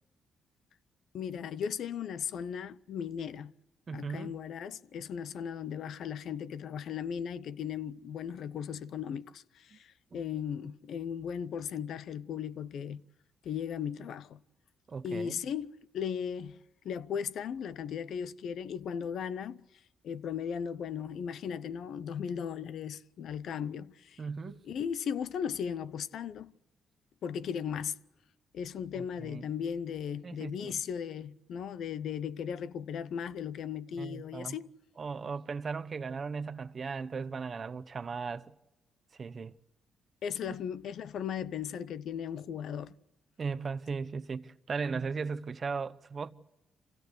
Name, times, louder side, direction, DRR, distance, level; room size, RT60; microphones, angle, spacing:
voice 1, 1.1-3.5 3.9-13.0 13.4-14.4 15.0-16.6 16.8-19.6 20.0-24.2 24.6-26.5 27.2-28.0 28.5-34.7 40.2-43.0, left 8 dB, 70° left, 0.7 m, -37 dB
voice 2, 3.9-4.3 10.1-10.2 14.9-15.4 24.2-24.6 28.9-29.4 30.2-30.7 34.0-34.6 35.0-38.5 39.2-39.5 40.5-40.6 43.4-46.3, right 5 dB, 40° right, 0.9 m, -37 dB
25.5 x 16.5 x 8.0 m
cardioid pair, 90°, 0 cm